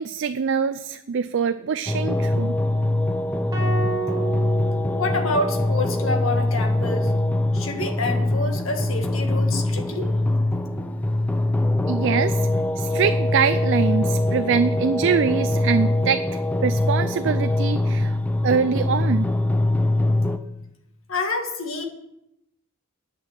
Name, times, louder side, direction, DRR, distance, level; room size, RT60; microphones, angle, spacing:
voice 1, 0.0-2.6 11.9-12.5 12.8-18.2 18.4-19.3, right 6 dB, 60° right, 11 dB, 0.4 m, -24 dB
sound 1, 1.9-20.4, left 1 dB, 5° left, 0.5 m, -23 dB
sound 2, 3.5-5.8, right 5 dB, 20° right, 2.3 m, -31 dB
voice 2, 4.9-7.1 7.5-10.1 21.1-21.8, left 2 dB, 75° left, 3 dB, 1.8 m, -27 dB
10.5 x 5.9 x 8.8 m, 0.84 s
head